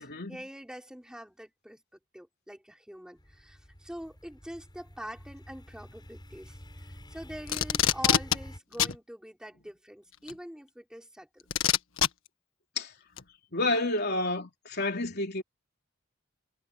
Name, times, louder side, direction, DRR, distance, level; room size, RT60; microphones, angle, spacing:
voice 1, 0.0-6.6 7.1-11.4, equal, 5° right, 5.5 m, -44 dB
sound 1, 3.2-8.6, equal, 20° left, 8.0 m, -48 dB
Packing tape duct tape, 7.5-8.4 8.8-9.0 10.3-10.4 11.5-12.1 13.2-13.3, left 9 dB, 85° left, 1.6 m, -24 dB
voice 2, 13.5-15.4, left 2 dB, 55° left, 3.5 m, -29 dB
head